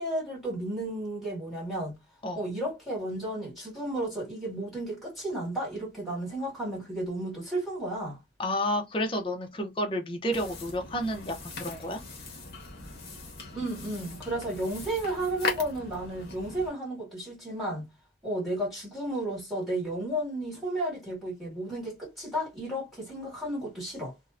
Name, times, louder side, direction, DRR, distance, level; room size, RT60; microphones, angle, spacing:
voice 1, 0.0-1.9 2.3-8.2 13.5-17.9 18.2-24.1, right 1 dB, ahead, 1.4 m, -33 dB
voice 2, 8.4-12.0, equal, 30° left, 0.5 m, -30 dB
sound 1, 10.3-16.7, left 4 dB, 55° left, 0.8 m, -39 dB
2.6 x 2.0 x 2.3 m
head